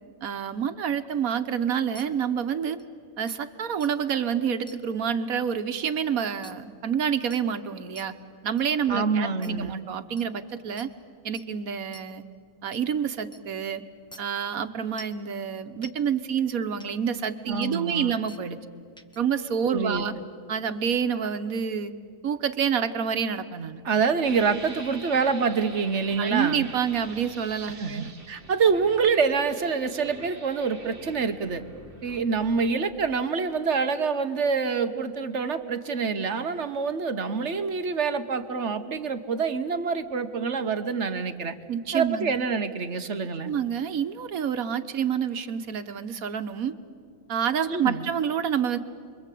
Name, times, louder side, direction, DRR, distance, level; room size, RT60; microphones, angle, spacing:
voice 1, 0.2-2.8 3.2-8.1 8.4-10.9 11.2-12.2 12.6-13.8 14.2-18.6 19.2-20.1 20.5-21.9 22.2-23.8 26.2-28.1 41.7-42.4 43.4-46.7 47.3-48.8, right 7 dB, 85° right, 10 dB, 1.5 m, -28 dB
sound 1, 1.9-2.0 2.8-2.9 3.3-3.4 3.8-3.9 4.7-4.8 6.4-6.5 7.3-7.4 7.9-8.0 8.6-8.7 9.4-9.5 10.2-10.3 10.8-10.9 11.3-11.4 11.9-12.0 12.7-12.8 13.3-13.4 14.1-14.2 15.0-15.2 15.8-15.9 16.8-16.9 17.6-17.7 18.3-18.4 19.0-19.2, left 1 dB, 5° left, 0.8 m, -46 dB
voice 2, 8.9-9.8 17.5-18.1 19.7-20.2 23.8-26.6 27.8-31.6 32.0-41.6 41.9-43.5 47.7-48.0, right 5 dB, 55° right, 9 dB, 1.4 m, -26 dB
sound 2, 24.2-32.7, right 2 dB, 40° right, 2.4 m, -45 dB
30.0 x 23.0 x 8.4 m, 2.1 s
omnidirectional pair, 1.5 m